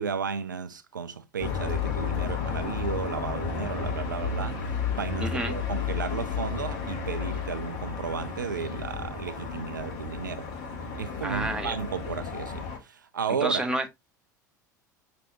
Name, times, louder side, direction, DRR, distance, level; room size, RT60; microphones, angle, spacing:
voice 1, 0.0-10.5 11.0-13.6, right 6 dB, 80° right, 0.4 m, -33 dB
sound 1, 1.4-12.8, left 6 dB, 50° left, 1.3 m, -32 dB
voice 2, 5.2-5.6 11.2-11.8 13.4-13.9, right 2 dB, 10° right, 1.0 m, -29 dB
6.0 x 2.9 x 2.8 m
figure-of-eight pair, 75°, 10 cm